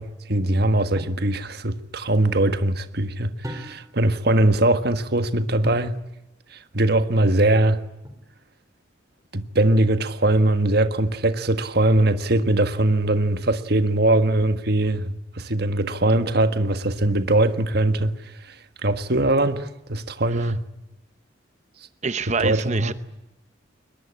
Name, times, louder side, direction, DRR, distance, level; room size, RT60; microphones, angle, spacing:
voice 1, 0.0-6.0 6.5-7.8 9.3-20.6 22.4-22.9, right 1 dB, 55° right, 1.6 m, -21 dB
sound 1, 1.0-1.3 3.4-4.1 5.6-6.0 8.0-8.6, equal, 15° right, 3.8 m, -38 dB
voice 2, 22.0-22.9, right 4 dB, 35° right, 0.8 m, -26 dB
22.5 x 20.5 x 9.8 m
head